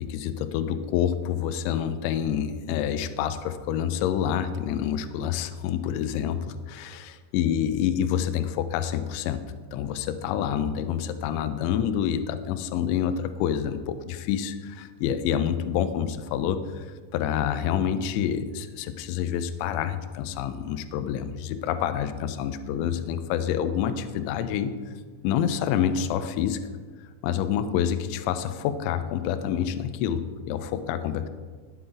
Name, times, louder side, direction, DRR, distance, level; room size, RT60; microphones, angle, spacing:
voice 1, 0.0-9.4 9.7-24.9 25.2-26.6 27.2-31.3, left 9 dB, 80° left, 10 dB, 2.8 m, -27 dB
12.0 x 8.1 x 3.9 m, 1.5 s
omnidirectional pair, 5.5 m